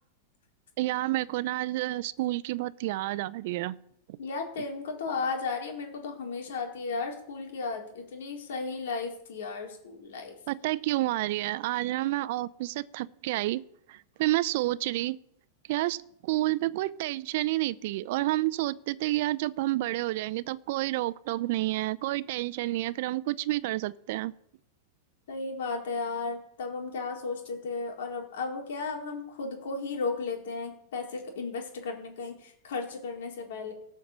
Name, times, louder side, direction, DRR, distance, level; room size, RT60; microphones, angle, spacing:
voice 1, 0.8-3.8 4.1-4.2 10.5-13.6 13.9-15.2 15.7-24.3, right 17 dB, 55° right, 18 dB, 0.6 m, -29 dB
voice 2, 4.2-10.4 25.3-33.7, left 4 dB, 75° left, 1 dB, 4.2 m, -34 dB
18.0 x 6.5 x 7.3 m, 0.74 s
supercardioid pair, 145°, 0 cm